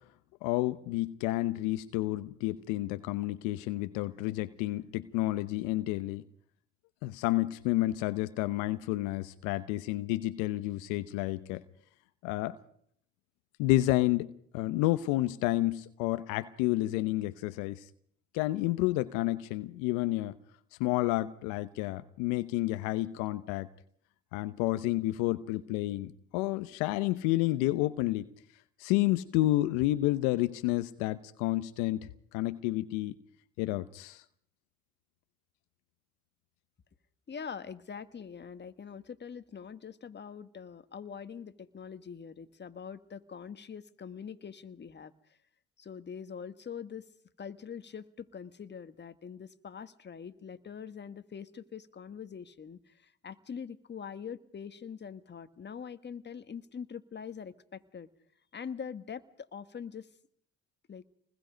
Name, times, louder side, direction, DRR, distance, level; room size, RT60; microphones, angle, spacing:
voice 1, 0.4-6.2 7.0-11.6 12.2-12.6 13.6-14.3 14.5-17.9 18.3-20.4 20.8-23.7 24.3-28.3 28.8-32.0 32.3-33.1 33.6-34.2, left 17 dB, 80° left, 0.9 m, -30 dB
voice 2, 37.3-45.4 45.8-47.1 47.4-58.1 58.5-60.1 60.9-61.0, left 7 dB, 35° left, 1.6 m, -43 dB
28.0 x 20.5 x 5.2 m
supercardioid pair, 65°, 31 cm